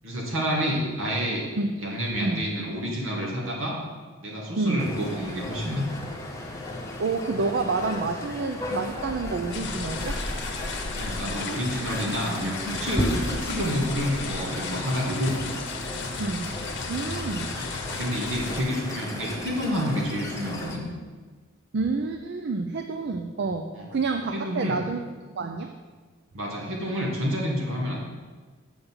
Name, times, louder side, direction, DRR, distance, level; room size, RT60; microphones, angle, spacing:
voice 1, 0.0-1.4 1.8-3.8 4.2-5.9 10.9-15.4 17.5-17.6 18.0-20.8 23.7-23.9 24.3-24.8 26.3-28.0, equal, 70° right, -2 dB, 2.1 m, -29 dB
voice 2, 4.6-4.9 7.0-10.2 16.2-16.6 16.9-17.5 21.7-25.0 25.4-25.7, right 3 dB, 55° right, 6 dB, 0.5 m, -28 dB
sound 1, 4.8-20.8, left 1 dB, 15° left, 1.0 m, -35 dB
sound 2, 9.5-18.6, left 4 dB, 55° left, 0.8 m, -34 dB
7.1 x 5.3 x 7.1 m, 1.4 s
head